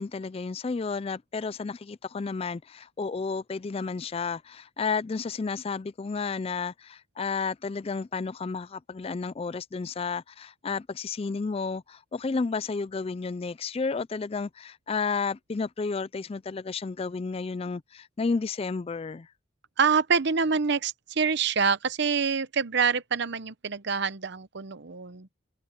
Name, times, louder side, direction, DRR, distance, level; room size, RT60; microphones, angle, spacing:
voice 1, 0.0-19.3, left 4 dB, 30° left, 0.3 m, -32 dB
voice 2, 19.8-25.3, right 5 dB, 55° right, 0.8 m, -26 dB
head